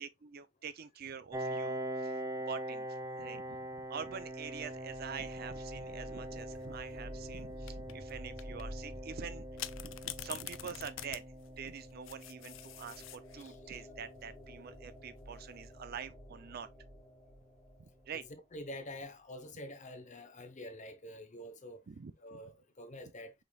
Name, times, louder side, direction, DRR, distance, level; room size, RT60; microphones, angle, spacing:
voice 1, 0.0-2.2 2.5-9.4 9.8-11.2 11.6-16.7 17.8-18.2 21.9-22.4, right 6 dB, 55° right, 0.5 m, -46 dB
Piano, 1.3-16.7, right 1 dB, 20° right, 0.7 m, -44 dB
sound 1, 4.1-18.7, equal, 10° left, 1.8 m, -51 dB
sound 2, 6.4-6.8 7.7-8.1 8.4-8.6 9.6-13.5 15.2-15.6, left 14 dB, 80° left, 0.4 m, -45 dB
voice 2, 13.4-13.8 18.1-21.8 22.2-23.3, left 1 dB, 40° left, 0.9 m, -47 dB
5.1 x 3.9 x 2.3 m
head